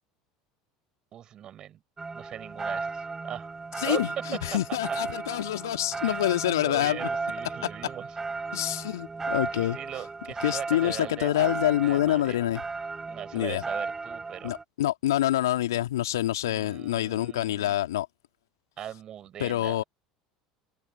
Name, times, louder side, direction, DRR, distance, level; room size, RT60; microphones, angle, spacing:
voice 1, 1.1-1.8 2.1-3.5 3.9-4.0 4.5-5.0 6.0-6.3 6.6-8.2 9.5-12.4 13.1-14.5 16.4-17.8 18.8-19.8, right 10 dB, 40° right, 5.5 m, -40 dB
sound 1, 2.0-14.6, right 4 dB, 20° right, 7.0 m, -35 dB
voice 2, 3.8-7.0 8.5-9.8 10.4-12.6 13.3-13.6 14.4-18.1 19.4-19.8, left 13 dB, 70° left, 2.0 m, -26 dB
figure-of-eight pair, 70°, 2 cm